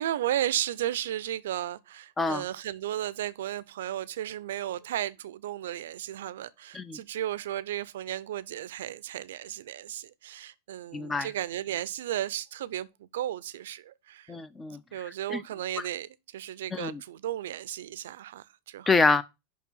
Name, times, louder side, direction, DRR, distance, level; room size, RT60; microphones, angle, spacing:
voice 1, 0.0-14.4 14.9-19.0, right 12 dB, 80° right, 0.5 m, -34 dB
voice 2, 10.9-11.3 14.3-14.8 15.3-15.4 16.7-17.0 18.9-19.2, left 3 dB, 10° left, 0.3 m, -26 dB
5.7 x 4.7 x 5.4 m
supercardioid pair, 170°, 0 cm